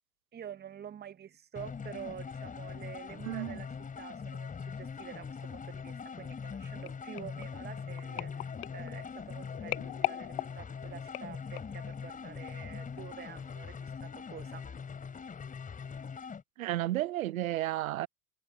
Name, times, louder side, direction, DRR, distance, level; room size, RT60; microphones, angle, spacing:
voice 1, 0.3-3.7 4.0-14.7, right 9 dB, 25° right, 1.8 m, -48 dB
sound 1, 1.6-16.4, left 6 dB, 20° left, 4.0 m, -42 dB
voice 2, 3.2-3.6 16.6-18.1, right 15 dB, 75° right, 0.5 m, -32 dB
sound 2, 6.9-11.9 12.5-12.7 13.0-13.1, left 22 dB, 50° left, 0.7 m, -40 dB
figure-of-eight pair, 90°, 42 cm